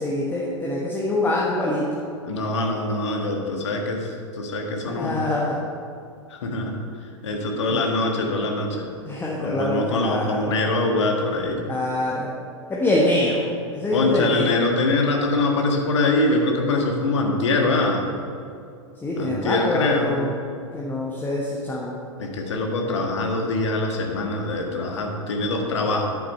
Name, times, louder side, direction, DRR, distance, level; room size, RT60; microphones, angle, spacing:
voice 1, 0.0-1.8 4.9-5.6 7.7-7.8 9.0-10.6 11.6-12.3 12.7-13.5 13.7-14.6 19.0-20.4 20.7-22.0, left 1 dB, 10° left, -4 dB, 1.2 m, -24 dB
voice 2, 2.2-5.2 6.3-6.8 7.2-8.9 9.4-11.6 13.9-18.0 19.2-20.2 22.2-26.1, left 2 dB, 60° left, 2 dB, 1.6 m, -24 dB
9.5 x 6.7 x 5.4 m, 2.4 s
figure-of-eight pair, 95°, 16 cm